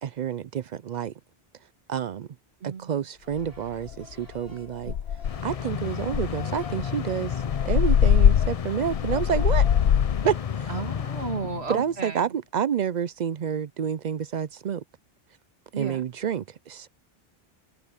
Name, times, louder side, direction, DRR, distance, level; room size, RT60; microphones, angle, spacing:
voice 1, 0.0-1.1 1.9-2.3 2.6-4.9 5.4-9.7 10.2-10.7 11.7-14.8 15.8-16.9, right 8 dB, 55° right, 0.5 m, -29 dB
voice 2, 2.6-2.9 4.9-5.0 10.7-12.2 15.7-16.0, right 4 dB, 85° right, 2.6 m, -33 dB
sound 1, 3.2-4.8 5.2-7.1 7.4-7.8 8.1-8.2 8.4-8.7, left 3 dB, 20° left, 3.5 m, -55 dB
sound 2, 3.4-3.5 3.9-4.1 4.5-4.6 4.8-5.5 6.1-10.3, left 9 dB, 75° left, 0.9 m, -22 dB
sound 3, 5.2-12.1, left 7 dB, 45° left, 0.6 m, -32 dB
omnidirectional pair, 1.1 m